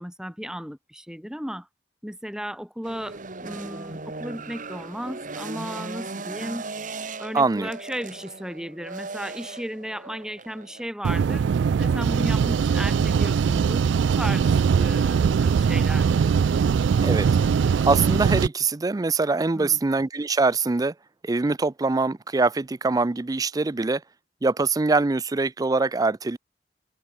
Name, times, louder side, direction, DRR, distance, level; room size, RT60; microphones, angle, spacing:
voice 1, 0.0-1.7 2.0-6.7 7.2-11.5 11.8-16.2 19.5-19.8, equal, 5° right, 5.6 m, -35 dB
sound 1, 2.8-10.9, right 3 dB, 50° right, 1.8 m, -37 dB
voice 2, 7.3-7.7 17.0-17.3 17.8-20.9 21.2-24.0 24.4-26.4, right 3 dB, 20° right, 0.4 m, -23 dB
sound 2, 11.0-18.5, right 6 dB, 90° right, 0.3 m, -21 dB
head